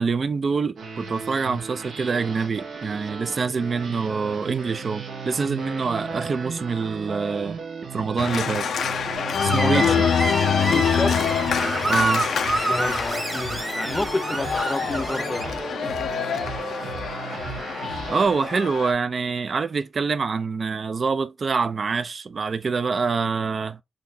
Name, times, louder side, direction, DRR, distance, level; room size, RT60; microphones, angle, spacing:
voice 1, 0.0-7.6 7.9-8.7 9.4-10.1 11.9-12.3 18.1-23.8, right 5 dB, 50° right, 0.4 m, -25 dB
sound 1, 0.8-18.3, right 4 dB, 90° right, 1.1 m, -36 dB
Organ, 8.2-18.9, left 7 dB, 85° left, 0.5 m, -26 dB
Screech, 9.4-15.5, right 2 dB, 35° right, 1.4 m, -28 dB
voice 2, 9.5-10.0 10.7-11.2 12.6-16.2 16.5-16.9, left 2 dB, 25° left, 0.6 m, -30 dB
4.0 x 3.2 x 2.6 m
cardioid pair, 75°, 0 cm